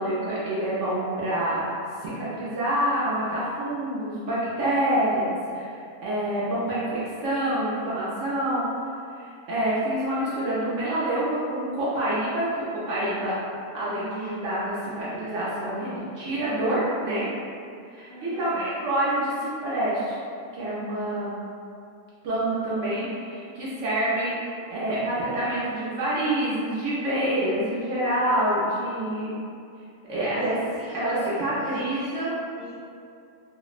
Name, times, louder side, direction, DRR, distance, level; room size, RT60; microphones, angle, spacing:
voice 1, 0.0-1.6 2.0-8.7 9.1-13.3 13.7-17.2 17.9-20.2 20.5-21.4 22.2-29.4 30.1-30.6 30.9-32.3, right 1 dB, 65° right, -8 dB, 0.8 m, -27 dB
voice 2, 18.1-18.6 28.5-28.6 30.5-32.3 32.5-32.7, right 1 dB, 35° left, -15 dB, 0.7 m, -42 dB
3.4 x 2.0 x 2.4 m, 2.5 s
omnidirectional pair, 1.6 m